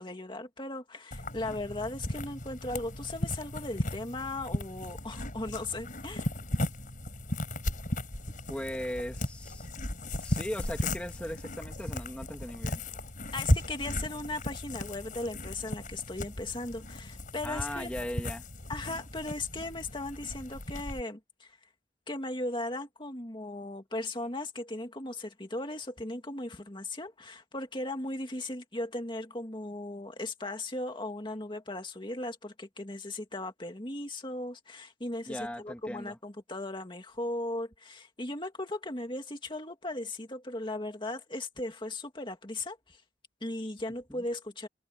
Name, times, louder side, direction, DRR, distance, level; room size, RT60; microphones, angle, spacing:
voice 1, 0.0-6.3 13.3-17.9 18.7-21.5 22.1-43.0 43.4-44.7, left 2 dB, 25° left, 2.4 m, -37 dB
sound 1, 1.1-21.0, left 1 dB, 45° left, 6.2 m, -36 dB
voice 2, 8.5-9.7 10.2-12.8 17.4-18.4 35.3-36.2 44.1-44.2, equal, 5° left, 2.2 m, -38 dB
head